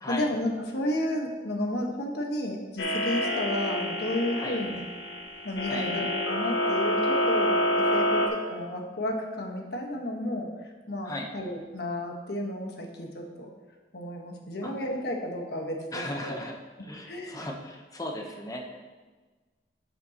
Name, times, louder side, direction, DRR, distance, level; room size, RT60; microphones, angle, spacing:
voice 1, 0.0-4.8 5.4-13.5 13.9-16.4 17.1-17.4, left 1 dB, 65° left, 1 dB, 1.3 m, -32 dB
sound 1, 2.8-8.3, left 1 dB, 90° left, 1.4 m, -27 dB
voice 2, 15.9-16.5 16.8-18.8, left 1 dB, 20° left, 2 dB, 0.9 m, -36 dB
11.5 x 7.0 x 2.9 m, 1.3 s
head